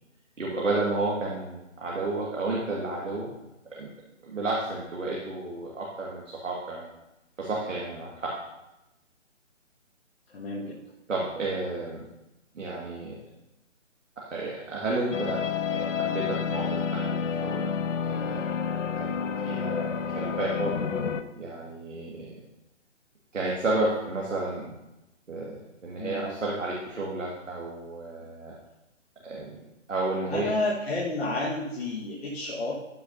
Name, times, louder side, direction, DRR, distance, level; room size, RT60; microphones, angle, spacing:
voice 1, 0.4-3.3 3.7-3.9 4.2-6.9 7.4-8.4 11.1-12.0 12.5-13.2 14.2-17.7 18.1-18.4 19.0-22.3 23.3-24.7 25.3-28.5 29.2-29.5 29.9-30.6, right 2 dB, 75° right, -4 dB, 2.0 m, -32 dB
voice 2, 10.3-10.8 26.0-26.3 30.3-32.7, left 2 dB, 55° left, -4 dB, 1.6 m, -30 dB
sound 1, 15.1-21.2, left 6 dB, 80° left, 0.7 m, -29 dB
13.0 x 6.5 x 2.7 m, 0.95 s
figure-of-eight pair, 150°, 38 cm